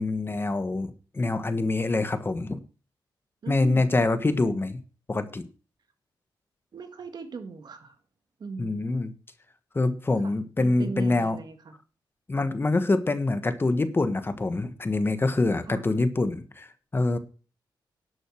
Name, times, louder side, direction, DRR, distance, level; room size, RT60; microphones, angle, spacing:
voice 1, 0.0-2.6 3.5-4.8 5.1-5.4 8.6-9.1 9.7-11.4 12.3-17.2, left 2 dB, 25° left, 10 dB, 1.3 m, -25 dB
voice 2, 3.4-3.9 4.5-4.6 6.7-8.0 8.4-9.0 10.2-11.8 15.7-15.9, right 4 dB, 55° right, 7 dB, 1.9 m, -39 dB
11.5 x 6.4 x 6.3 m, 0.36 s
cardioid pair, 95°, 8 cm